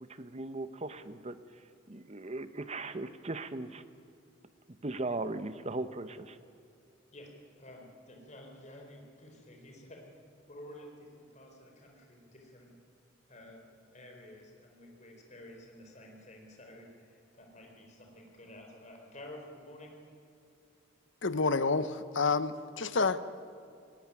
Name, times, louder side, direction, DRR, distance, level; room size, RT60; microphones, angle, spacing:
voice 1, 0.0-3.8 4.8-6.4, right 2 dB, 30° right, 12 dB, 0.9 m, -38 dB
voice 2, 7.1-10.0 10.5-12.7 13.3-13.6 13.9-20.0, left 1 dB, 35° left, 1 dB, 4.4 m, -51 dB
voice 3, 21.2-23.2, left 4 dB, 60° left, 13 dB, 0.9 m, -29 dB
19.0 x 17.0 x 9.8 m, 2.6 s
head